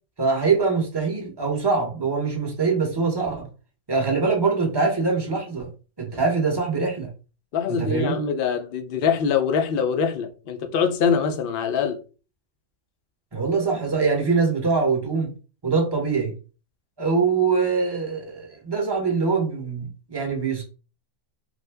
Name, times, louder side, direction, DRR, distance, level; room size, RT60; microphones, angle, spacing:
voice 1, 0.2-3.5 3.9-5.7 6.0-7.1 7.7-8.2 13.3-15.3 15.6-16.3 17.0-20.6, right 4 dB, 20° right, 0.7 m, -23 dB
voice 2, 7.5-12.0, left 6 dB, 65° left, 0.5 m, -23 dB
3.3 x 2.2 x 3.3 m
omnidirectional pair, 1.6 m